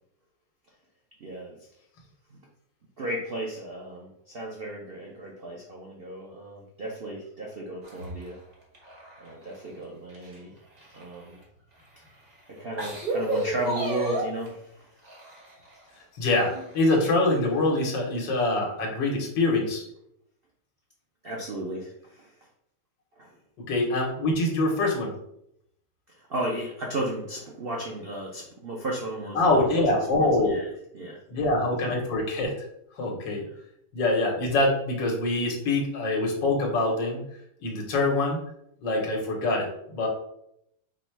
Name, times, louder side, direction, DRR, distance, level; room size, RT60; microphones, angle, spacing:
voice 1, 1.2-1.6 2.3-2.4 3.0-8.4 9.2-10.5 10.9-11.4 12.5-14.9 21.2-22.4 23.2-23.3 26.1-29.8 30.2-31.5, right 1 dB, 75° right, -2 dB, 0.5 m, -34 dB
sound 1, 7.8-9.7 10.1-11.4 12.1-12.2 12.6-14.5 15.0-15.8 16.3-17.0 17.4-17.5 18.6-18.7, right 2 dB, 30° right, 0.8 m, -33 dB
voice 2, 16.2-19.8 23.6-25.1 29.4-30.6 31.3-32.6 33.0-33.5 33.9-37.3 37.6-38.4 38.8-40.1, left 2 dB, 75° left, 0 dB, 1.7 m, -24 dB
4.9 x 2.2 x 4.5 m, 0.75 s
omnidirectional pair, 2.0 m